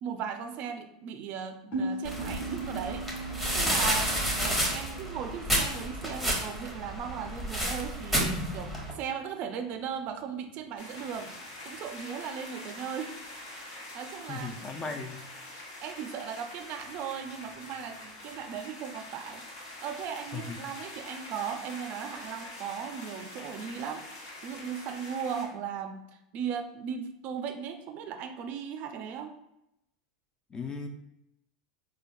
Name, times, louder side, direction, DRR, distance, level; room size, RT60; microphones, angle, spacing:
voice 1, 0.0-11.3 11.6-13.2 13.6-14.5 15.8-26.0 26.3-29.3, right 7 dB, 50° right, 6 dB, 0.4 m, -37 dB
sound 1, 1.7-7.0, right 2 dB, 50° left, 1.2 m, -39 dB
sound 2, 2.0-8.9, equal, ahead, 0.8 m, -30 dB
sound 3, 10.8-25.5, left 2 dB, 65° left, 1.0 m, -45 dB
voice 2, 14.3-15.2 20.3-20.7 30.5-30.9, left 4 dB, 20° left, 5 dB, 0.4 m, -37 dB
3.6 x 2.2 x 2.5 m, 0.81 s
hypercardioid pair, 105°, 3 cm